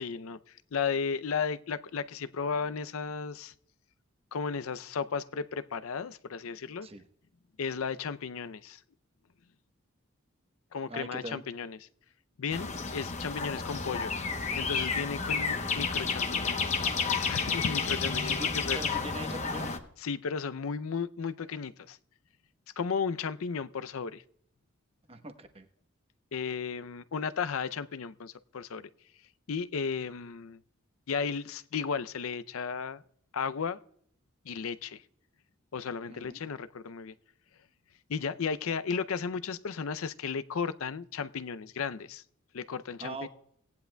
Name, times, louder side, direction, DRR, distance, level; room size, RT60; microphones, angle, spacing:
voice 1, 0.0-3.5 4.3-6.9 7.6-8.8 10.7-11.8 12.4-14.1 14.6-16.8 17.3-18.8 20.0-22.0 22.8-24.2 26.3-28.9 29.5-30.6 31.1-33.0 33.3-33.8 34.4-35.0 35.7-37.1 38.1-42.2 42.5-43.3, left 5 dB, 75° left, 14 dB, 0.5 m, -34 dB
voice 2, 10.9-11.4 18.2-18.5 18.7-19.8 25.1-25.7 36.1-36.4 43.0-43.3, right 1 dB, 25° right, 7 dB, 0.9 m, -41 dB
sound 1, 12.5-19.8, left 5 dB, 35° left, 0.9 m, -31 dB
18.0 x 10.5 x 2.2 m, 0.67 s
head